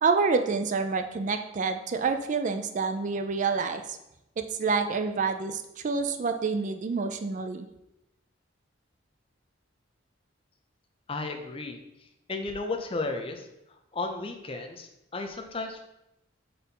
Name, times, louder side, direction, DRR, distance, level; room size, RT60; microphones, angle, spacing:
voice 1, 0.0-4.0 4.4-7.7, right 4 dB, 40° right, 7 dB, 0.4 m, -28 dB
voice 2, 11.1-11.8 12.3-13.5 13.9-15.8, left 3 dB, 30° left, 4 dB, 0.6 m, -34 dB
4.3 x 4.2 x 5.3 m, 0.88 s
head